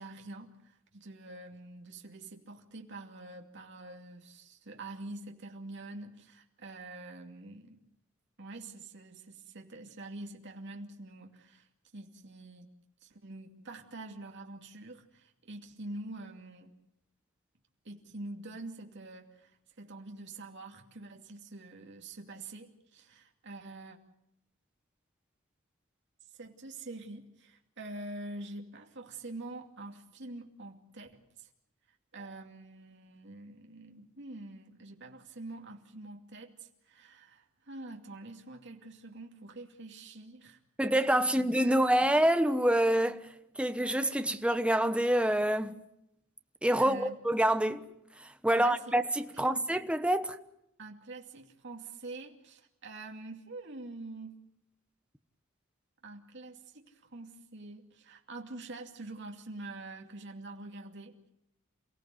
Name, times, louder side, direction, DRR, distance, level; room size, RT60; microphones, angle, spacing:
voice 1, 0.0-7.8 8.4-12.7 13.0-16.8 17.8-24.0 26.3-31.5 31.9-40.6 41.3-42.2 46.8-47.2 48.5-48.8 49.3-49.7 50.8-54.4 56.0-61.3, right 2 dB, 60° right, 2.6 m, -46 dB
voice 2, 40.8-43.3 43.6-45.7 46.6-47.8 48.4-50.4, right 1 dB, 5° right, 1.1 m, -26 dB
28.5 x 17.0 x 7.8 m
head